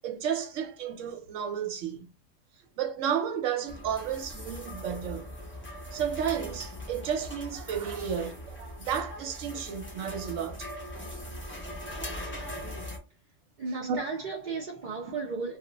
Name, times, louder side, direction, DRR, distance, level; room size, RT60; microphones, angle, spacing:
voice 1, 0.0-2.1 2.8-5.3 5.9-10.7 11.8-11.9 12.4-12.8 13.9-14.0, right 8 dB, 75° right, 1.0 m, -32 dB
sound 1, 3.7-13.0, left 1 dB, 15° left, 0.5 m, -40 dB
voice 2, 13.6-15.6, right 4 dB, 50° right, 0.6 m, -34 dB
2.4 x 2.1 x 3.8 m
omnidirectional pair, 1.4 m